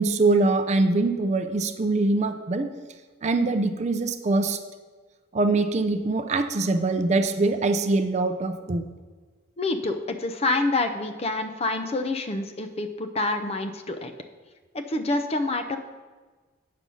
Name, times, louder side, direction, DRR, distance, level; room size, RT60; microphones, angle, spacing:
voice 1, 0.0-2.7 3.2-4.6 5.3-8.9, right 3 dB, 35° right, 7 dB, 0.5 m, -23 dB
voice 2, 9.6-14.1 14.7-15.8, left 2 dB, 30° left, 7 dB, 0.6 m, -27 dB
8.4 x 5.3 x 6.2 m, 1.3 s
head